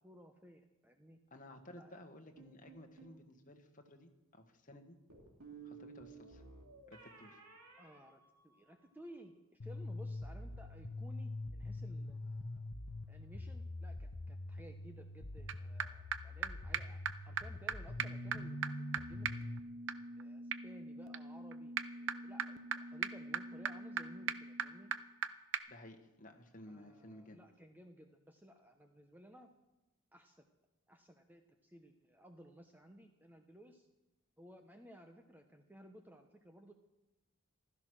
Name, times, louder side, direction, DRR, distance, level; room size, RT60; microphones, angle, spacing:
voice 1, 0.0-1.2 1.7-2.1 7.8-12.6 13.1-18.6 18.9-19.3 20.2-24.9 26.7-29.5 30.1-30.5 30.9-33.9 34.4-36.7, equal, 10° right, 5 dB, 0.9 m, -58 dB
voice 2, 1.3-5.0 5.6-6.4 6.9-7.4 25.7-27.4, left 1 dB, 40° left, 4 dB, 1.6 m, -55 dB
sound 1, 2.4-3.2 5.1-8.9, right 5 dB, 90° right, 3.2 m, -56 dB
sound 2, 9.6-19.6, left 2 dB, 80° left, 1.0 m, -44 dB
sound 3, 15.5-15.6 15.8-15.9 16.1-16.2 16.4-16.5 16.7-16.8 17.1-17.2 17.4-17.5 17.7-17.8 18.0-25.3 25.5-25.6, right 7 dB, 65° right, 0.7 m, -40 dB
15.5 x 13.0 x 6.3 m, 0.98 s
head